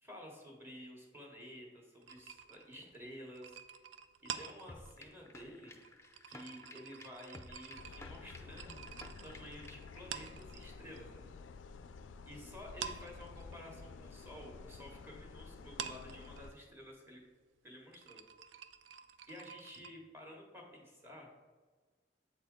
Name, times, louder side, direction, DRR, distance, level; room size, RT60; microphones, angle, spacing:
voice 1, 0.0-3.6 4.2-5.7 6.3-8.9 9.2-11.3 12.3-17.2 17.6-18.2 19.3-21.3, equal, 10° right, -1 dB, 1.1 m, -52 dB
sound 1, 2.0-11.0 11.3-12.3 12.6-19.9, right 8 dB, 75° right, 0.4 m, -49 dB
sound 2, 4.7-10.0, left 2 dB, 15° left, 0.5 m, -55 dB
sound 3, 7.8-16.5, left 4 dB, 90° left, 0.4 m, -51 dB
7.8 x 4.2 x 3.7 m, 1.4 s
head